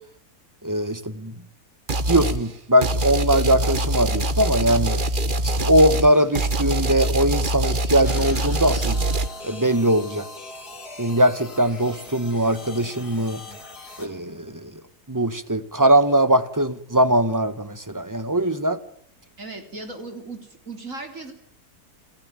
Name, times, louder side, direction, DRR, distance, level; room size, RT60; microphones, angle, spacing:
voice 1, 0.6-1.3 2.1-5.0 5.4-9.0 9.4-10.3 11.0-13.4 14.0-14.7 15.1-18.8, right 1 dB, 15° right, 13 dB, 1.3 m, -21 dB
sound 1, 1.9-2.4 2.8-9.3, right 1 dB, 35° right, 1.2 m, -24 dB
sound 2, 8.0-14.1, left 3 dB, 80° left, 4.2 m, -40 dB
voice 2, 19.4-21.3, right 3 dB, 55° right, 5 dB, 4.3 m, -37 dB
29.5 x 19.0 x 9.2 m, 0.64 s
omnidirectional pair, 1.7 m